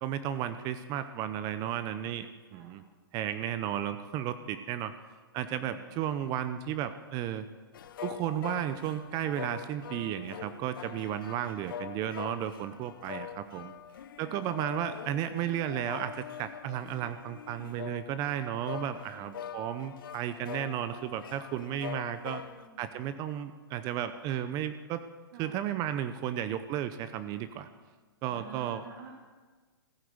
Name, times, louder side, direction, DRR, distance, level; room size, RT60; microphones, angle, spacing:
voice 1, 0.0-2.8 3.1-4.9 5.3-7.5 8.0-13.7 14.2-22.4 22.8-25.0 25.4-27.7 28.2-28.8, right 10 dB, 30° right, 11 dB, 0.7 m, -34 dB
voice 2, 5.6-6.0 14.2-14.7 19.1-19.7 22.1-22.9 25.3-25.6 28.3-29.1, right 5 dB, 55° right, -1 dB, 2.3 m, -52 dB
sound 1, 7.7-22.7, left 9 dB, 60° left, 0.9 m, -44 dB
15.5 x 9.3 x 7.9 m, 1.4 s
hypercardioid pair, 130°, 13 cm